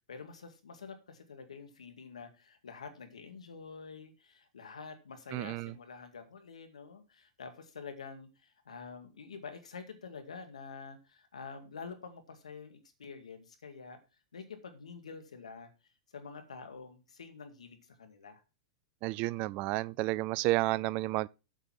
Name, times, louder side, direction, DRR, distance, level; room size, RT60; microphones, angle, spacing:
voice 1, 0.1-14.0 14.3-15.7 16.1-18.4, left 5 dB, 85° left, 2.1 m, -47 dB
voice 2, 5.3-5.7 19.0-21.3, right 19 dB, 45° right, 0.4 m, -31 dB
8.1 x 6.9 x 6.0 m
hypercardioid pair, 105°, 3 cm